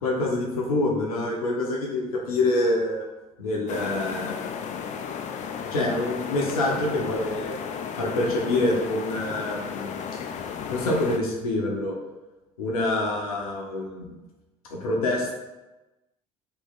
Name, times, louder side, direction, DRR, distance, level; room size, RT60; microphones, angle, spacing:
voice 1, 0.0-3.0 3.4-4.3 5.7-7.5 8.0-10.0 10.7-11.9 12.6-14.1 14.7-15.3, left 2 dB, 85° left, -1 dB, 0.7 m, -26 dB
sound 1, 3.7-11.2, left 7 dB, 40° left, 0.4 m, -34 dB
3.1 x 2.7 x 3.9 m, 1.1 s
hypercardioid pair, 60°, 18 cm